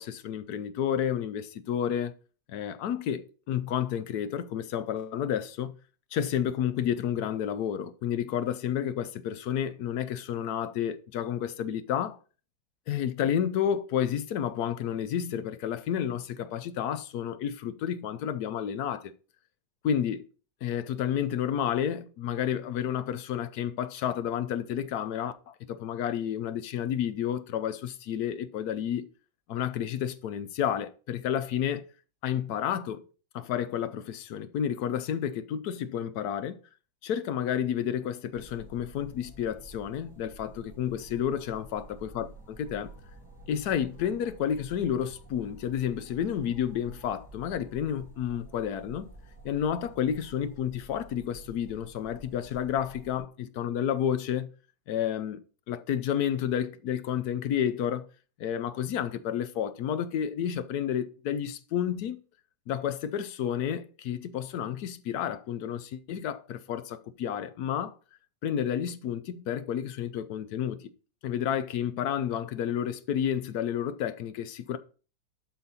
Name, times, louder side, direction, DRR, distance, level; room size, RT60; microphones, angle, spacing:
voice 1, 0.0-2.2 2.5-5.7 6.1-12.2 12.9-19.0 19.8-20.2 20.6-29.1 29.5-31.8 32.2-33.0 33.3-36.6 37.0-42.9 43.5-49.1 49.4-54.5 54.9-55.4 55.7-58.1 58.4-62.2 62.7-67.9 68.4-70.9 71.2-74.8, left 9 dB, 70° left, 1.0 m, -30 dB
sound 1, 38.3-53.2, right 2 dB, 15° right, 1.5 m, -50 dB
11.5 x 4.1 x 4.1 m
omnidirectional pair, 2.0 m